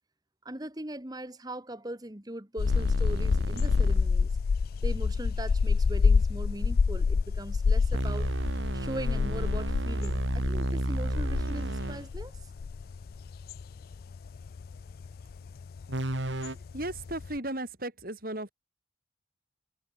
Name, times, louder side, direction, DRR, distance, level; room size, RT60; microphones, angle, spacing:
voice 1, 0.4-4.3 4.8-8.3 8.7-12.3, right 1 dB, 20° right, 1.7 m, -40 dB
sound 1, 2.6-17.4, left 5 dB, 55° left, 0.3 m, -28 dB
sound 2, 2.6-4.1 7.9-12.1 15.9-16.5, right 1 dB, 90° right, 2.6 m, -32 dB
voice 2, 16.7-18.5, right 1 dB, 50° right, 4.4 m, -35 dB
head